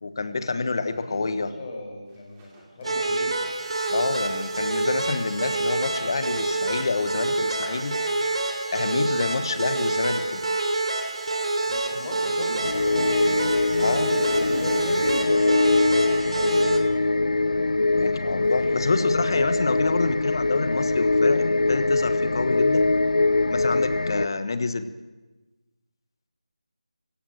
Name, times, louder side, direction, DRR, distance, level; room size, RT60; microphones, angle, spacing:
voice 1, 0.0-1.5 3.9-8.0 8.7-10.4 13.8-14.1 17.9-22.9 23.5-24.9, left 3 dB, 40° left, 12 dB, 1.3 m, -27 dB
voice 2, 0.9-3.4 11.7-13.4 14.1-15.7 18.3-19.4, left 1 dB, 20° left, -1 dB, 5.3 m, -37 dB
Burping eructation, 2.1-15.2, right 2 dB, 10° right, 2.8 m, -50 dB
sound 1, 2.8-16.8, right 2 dB, 55° right, 3.2 m, -27 dB
sound 2, 12.6-24.3, left 2 dB, 90° left, 0.6 m, -22 dB
25.0 x 15.5 x 7.8 m, 1.2 s
figure-of-eight pair, 175°, 4 cm